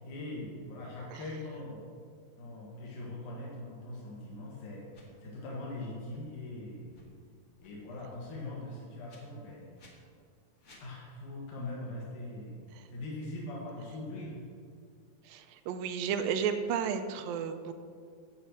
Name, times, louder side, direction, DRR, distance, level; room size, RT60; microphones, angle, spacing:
voice 1, 0.0-1.8 2.4-4.9 5.2-7.0 7.6-9.7 10.8-12.6 12.9-14.4, left 2 dB, 65° left, -4 dB, 3.0 m, -41 dB
sound 1, 4.9-5.1 6.1-6.2 6.8-7.1 7.6-7.7 9.1-9.2 9.7-9.9 10.6-10.9, left 2 dB, 45° left, 1.2 m, -58 dB
voice 2, 15.2-17.7, right 7 dB, 80° right, 7 dB, 2.4 m, -33 dB
8.8 x 8.2 x 6.5 m, 2.2 s
omnidirectional pair, 4.1 m